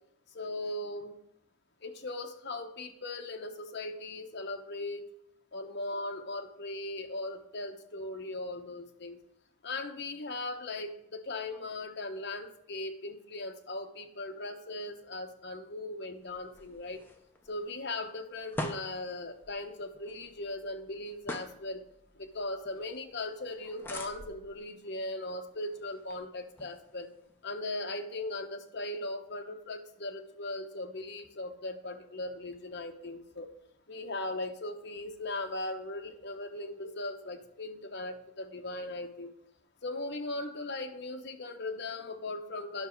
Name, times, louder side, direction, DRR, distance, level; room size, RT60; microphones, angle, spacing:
voice 1, 0.3-1.2 1.8-5.0 5.5-9.2 9.6-17.0 17.5-21.8 22.1-27.1 27.4-33.5 33.9-39.3 39.8-42.9, left 2 dB, 50° left, 4 dB, 1.0 m, -38 dB
sound 1, 16.2-27.5, left 1 dB, 10° left, 0.7 m, -46 dB
10.0 x 6.0 x 4.5 m, 0.78 s
head